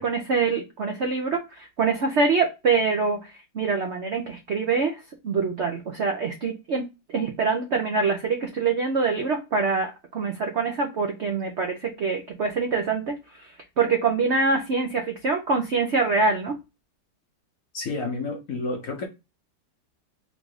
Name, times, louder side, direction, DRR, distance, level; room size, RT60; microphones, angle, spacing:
voice 1, 0.0-6.8 7.1-16.6, right 4 dB, 75° right, 0.6 m, -25 dB
voice 2, 17.7-19.1, left 3 dB, 60° left, 0.9 m, -30 dB
3.6 x 2.6 x 4.7 m
omnidirectional pair, 2.1 m